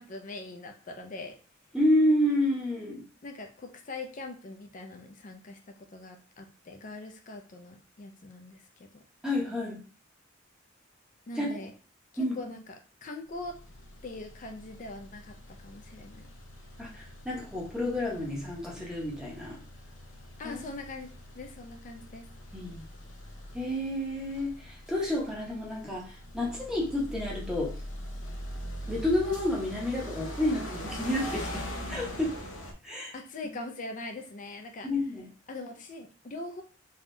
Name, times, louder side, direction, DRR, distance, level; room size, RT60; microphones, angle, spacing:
voice 1, 0.0-1.3 3.2-5.6 5.9-9.0 11.3-11.7 12.1-12.7 13.0-13.5 14.0-15.3 15.6-16.3 20.4-21.1 21.3-22.3 29.9-30.1 33.1-34.9 35.5-36.6, left 2 dB, 40° left, 4 dB, 0.4 m, -42 dB
voice 2, 1.7-3.0 9.2-9.8 11.3-11.5 12.2-12.4 16.8-19.6 20.4-20.6 22.5-22.9 23.5-27.8 28.9-32.4 32.8-33.1 34.8-35.3, left 1 dB, 5° right, -3 dB, 0.8 m, -30 dB
sound 1, 13.3-32.7, equal, 80° left, 0.7 m, -42 dB
3.4 x 2.3 x 2.6 m, 0.38 s
head